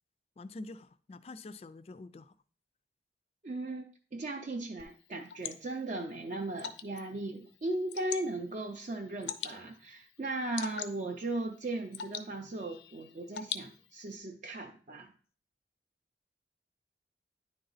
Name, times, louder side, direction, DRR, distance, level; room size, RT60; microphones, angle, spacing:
voice 1, 0.4-2.3, left 2 dB, 35° left, 0.3 m, -46 dB
voice 2, 3.4-15.1, right 2 dB, 45° right, 0.5 m, -37 dB
Water / Drip, 4.8-14.2, left 8 dB, 90° left, 0.5 m, -45 dB
9.7 x 3.9 x 4.0 m
head